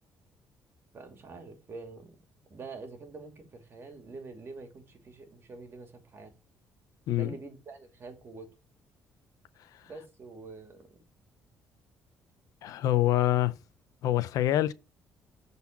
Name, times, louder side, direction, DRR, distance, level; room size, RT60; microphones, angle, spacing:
voice 1, 0.9-2.2 2.5-6.3 7.1-8.5 9.8-11.0, right 3 dB, 40° right, 2.4 m, -46 dB
voice 2, 12.6-13.5 14.0-14.7, left 14 dB, 75° left, 0.6 m, -25 dB
7.0 x 4.1 x 5.6 m
cardioid pair, 80°, 6 cm